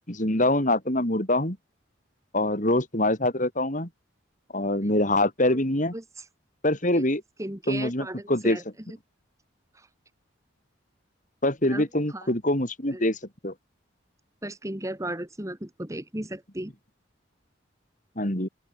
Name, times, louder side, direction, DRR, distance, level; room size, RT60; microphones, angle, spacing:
voice 1, 0.1-1.6 2.3-3.9 4.5-5.9 6.6-7.2 7.7-8.6 11.4-13.2 13.4-13.5 18.2-18.5, left 1 dB, 40° left, 4.8 m, -24 dB
voice 2, 5.9-6.3 6.9-7.0 7.4-9.0 9.8-9.9 11.6-12.3 12.9-13.0 14.4-16.7, right 1 dB, 15° right, 2.0 m, -36 dB
open air
head